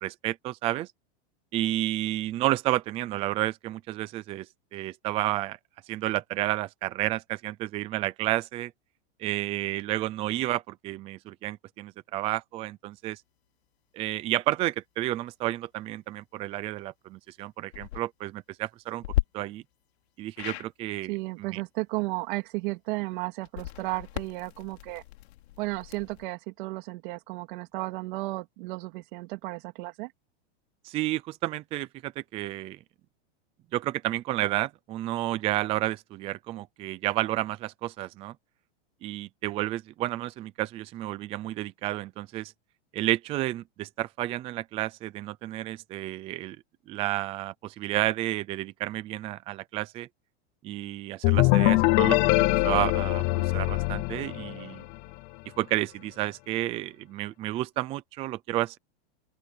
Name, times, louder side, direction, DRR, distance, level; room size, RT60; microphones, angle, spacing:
voice 1, 0.0-0.9 1.5-4.5 4.7-5.6 5.9-8.7 9.2-13.2 13.9-19.0 19.3-19.6 20.2-21.1 21.4-21.6 30.8-32.8 33.7-38.3 39.0-42.5 42.9-46.6 46.9-50.1 50.6-54.8 55.6-58.8, right 16 dB, 20° right, 0.5 m, -31 dB
sound 1, 17.6-18.0 19.0-19.2 20.4-20.7 23.4-26.2, left 16 dB, 75° left, 3.0 m, -34 dB
voice 2, 21.1-25.0 25.6-30.1, right 23 dB, 50° right, 2.9 m, -34 dB
sound 2, 51.2-54.9, left 22 dB, 35° left, 0.7 m, -23 dB
open air
supercardioid pair, 165°, 32 cm